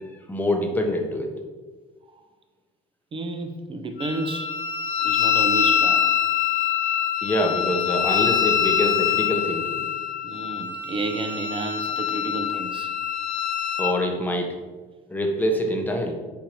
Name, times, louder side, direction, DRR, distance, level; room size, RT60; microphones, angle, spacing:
voice 1, 0.3-1.3 7.2-9.8 13.8-14.5 15.1-16.1, left 1 dB, 10° left, 2 dB, 0.7 m, -25 dB
voice 2, 3.1-4.6 5.0-6.1 10.2-12.9, right 2 dB, 30° right, 5 dB, 0.4 m, -31 dB
Wind instrument woodwind instrument, 4.0-13.9, left 9 dB, 80° left, 0.7 m, -24 dB
4.5 x 2.6 x 4.4 m, 1.3 s
cardioid pair, 110°, 17 cm